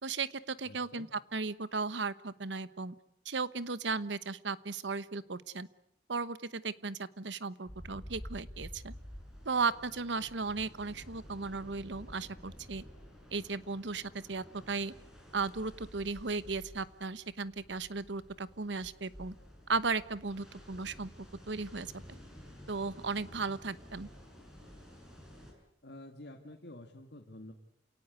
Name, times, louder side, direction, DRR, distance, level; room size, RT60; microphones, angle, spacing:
voice 1, 0.0-2.9 3.2-5.7 6.1-8.9 9.4-12.8 13.3-14.9 15.3-19.3 19.7-21.1 21.5-21.9 22.7-24.1, right 4 dB, 80° right, 16 dB, 1.1 m, -36 dB
voice 2, 0.6-1.1 25.8-27.5, left 1 dB, 70° left, 2 dB, 2.2 m, -49 dB
sound 1, 7.7-25.5, equal, 5° right, 6.7 m, -51 dB
28.5 x 18.0 x 9.6 m, 0.75 s
head